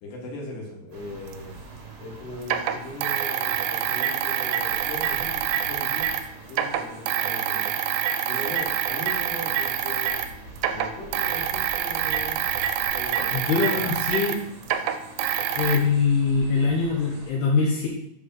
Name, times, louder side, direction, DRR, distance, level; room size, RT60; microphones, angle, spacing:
voice 1, 0.0-1.6 2.0-6.1 6.5-7.7 8.3-10.2 10.7-12.4 12.9-13.4 13.7-13.9, left 1 dB, 55° left, -3 dB, 2.8 m, -39 dB
sound 1, 0.9-17.3, right 3 dB, 65° right, 2.6 m, -44 dB
sound 2, 1.3-1.4 2.4-6.2 6.5-10.3 10.6-15.8, right 9 dB, 90° right, 2.8 m, -26 dB
voice 2, 13.3-14.4 15.5-17.9, left 4 dB, 75° left, -3 dB, 2.9 m, -23 dB
7.7 x 3.4 x 6.2 m, 0.76 s
omnidirectional pair, 4.9 m